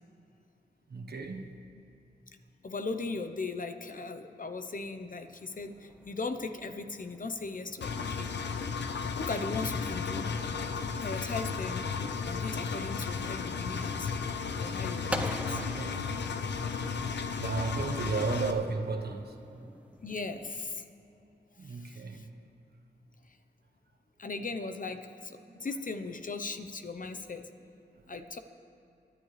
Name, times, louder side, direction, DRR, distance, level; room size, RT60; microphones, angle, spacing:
voice 1, 0.9-1.6 15.0-15.1 15.5-16.5 17.4-19.3 21.6-22.2 25.5-25.7, right 4 dB, 65° right, 5 dB, 1.3 m, -35 dB
voice 2, 2.6-8.3 9.2-10.3 11.0-11.9 12.3-14.1 14.6-15.6 20.0-20.8 21.6-22.3 24.2-27.5 28.1-28.4, left 3 dB, 50° left, 8 dB, 0.9 m, -38 dB
sound 1, 5.3-20.7, right 1 dB, 5° right, 0.9 m, -47 dB
Engine, 7.8-18.5, left 5 dB, 85° left, 0.7 m, -34 dB
24.0 x 11.0 x 3.4 m, 2.8 s
cardioid pair, 55°, 18 cm